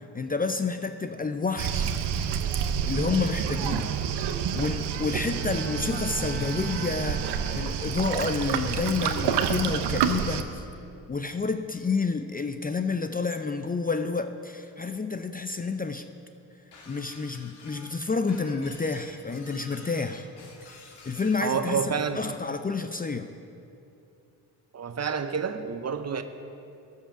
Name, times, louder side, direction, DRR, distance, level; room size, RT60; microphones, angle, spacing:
voice 1, 0.1-1.9 2.8-3.9 4.5-10.6 11.1-16.0 16.9-20.3 20.7-20.8 21.1-21.8 22.2-23.3, left 4 dB, 20° left, 8 dB, 0.5 m, -29 dB
Waves surf, 1.6-10.4, right 8 dB, 80° right, 0.7 m, -28 dB
Bowed string instrument, 5.2-8.4, right 2 dB, 5° left, 0.9 m, -41 dB
Shatter, 16.7-21.5, left 3 dB, 75° left, 1.7 m, -49 dB
voice 2, 21.4-22.2 24.7-26.2, right 6 dB, 40° right, 9 dB, 0.8 m, -29 dB
13.5 x 5.6 x 5.8 m, 2.6 s
supercardioid pair, 55°, 40 cm